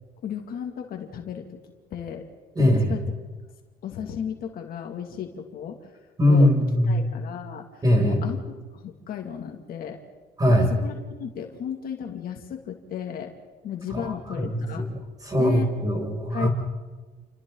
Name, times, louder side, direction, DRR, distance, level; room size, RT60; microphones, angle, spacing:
voice 1, 0.2-1.6 1.9-2.3 2.6-3.0 3.8-5.9 6.3-6.5 6.9-10.0 10.5-13.3 13.6-14.9 15.4-15.7 16.3-16.5, left 8 dB, 60° left, 3 dB, 2.6 m, -34 dB
voice 2, 2.6-2.9 6.2-7.0 7.8-8.2 10.4-10.7 13.9-16.5, left 1 dB, 20° right, 0 dB, 6.9 m, -21 dB
30.0 x 26.0 x 4.0 m, 1.3 s
cardioid pair, 110°, 17 cm